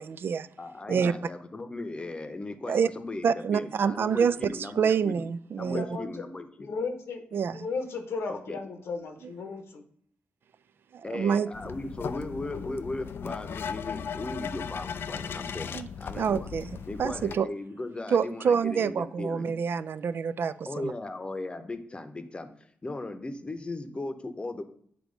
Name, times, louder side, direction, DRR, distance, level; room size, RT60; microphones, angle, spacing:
voice 1, 0.0-0.5 0.9-1.1 2.7-2.9 3.2-5.9 7.3-7.7 9.2-9.3 10.9-11.5 15.7-15.9 16.2-17.5 18.1-20.9, right 6 dB, 60° right, 0.3 m, -27 dB
voice 2, 0.6-5.2 5.6-6.7 8.3-8.6 11.0-16.5 16.8-19.5 20.7-24.6, left 2 dB, 25° left, 0.8 m, -37 dB
voice 3, 5.7-6.0 6.6-9.8, left 4 dB, 80° left, 1.1 m, -35 dB
sound 1, 11.5-17.4, left 7 dB, 65° left, 0.4 m, -37 dB
8.4 x 3.0 x 5.1 m
cardioid pair, 85°, 4 cm